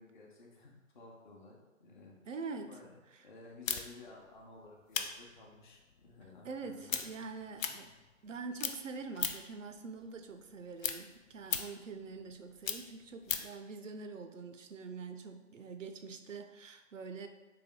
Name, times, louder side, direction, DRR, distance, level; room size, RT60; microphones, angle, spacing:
voice 1, 0.0-2.2 2.6-7.3, left 3 dB, 35° left, -1 dB, 0.8 m, -55 dB
voice 2, 2.3-2.8 6.4-8.0 8.2-17.3, right 4 dB, 70° right, 7 dB, 0.6 m, -45 dB
sound 1, 3.7-8.3 8.6-9.6 10.0-13.6, left 7 dB, 75° left, 0.5 m, -38 dB
3.4 x 3.2 x 3.5 m, 1.2 s
figure-of-eight pair, 135°, 40 cm